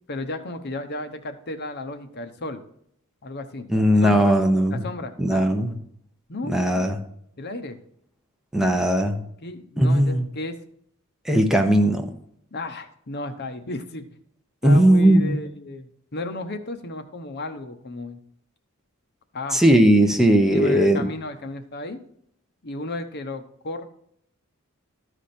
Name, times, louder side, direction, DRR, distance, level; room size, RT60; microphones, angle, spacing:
voice 1, 0.1-2.6 3.2-4.3 4.7-5.4 6.3-6.6 7.4-7.8 9.4-10.6 12.5-14.1 14.6-18.2 19.3-19.6 20.5-22.0 22.6-23.9, left 2 dB, 50° left, 8 dB, 0.9 m, -34 dB
voice 2, 3.7-4.8 5.2-5.7 6.5-7.0 8.5-9.2 9.8-10.3 11.3-12.1 14.6-15.4 19.5-21.0, right 1 dB, ahead, 4 dB, 0.7 m, -18 dB
13.5 x 5.0 x 4.3 m, 0.68 s
head